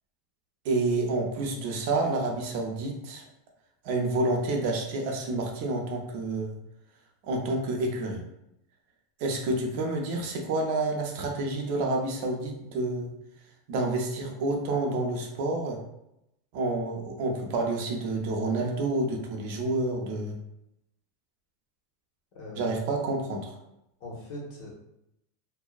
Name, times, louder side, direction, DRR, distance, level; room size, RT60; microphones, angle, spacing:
voice 1, 0.6-3.3 3.8-6.5 7.2-8.2 9.2-13.1 13.7-15.8 16.5-20.4 22.6-23.6, right 2 dB, 55° right, 1 dB, 0.6 m, -29 dB
voice 2, 22.3-22.7 24.0-24.8, left 1 dB, 55° left, -3 dB, 1.0 m, -41 dB
2.6 x 2.1 x 2.3 m, 0.83 s
supercardioid pair, 145°, 0 cm